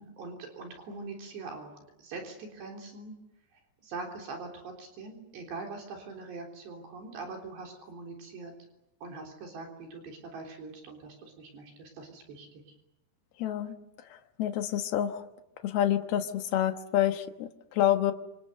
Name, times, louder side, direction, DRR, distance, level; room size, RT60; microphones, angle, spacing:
voice 1, 0.0-3.2 3.5-8.5 9.0-12.7, right 3 dB, 70° right, 2 dB, 5.8 m, -43 dB
voice 2, 13.4-13.8 14.1-15.2 15.6-18.1, left 11 dB, 70° left, 7 dB, 3.0 m, -28 dB
28.0 x 27.0 x 6.8 m, 0.89 s
omnidirectional pair, 5.1 m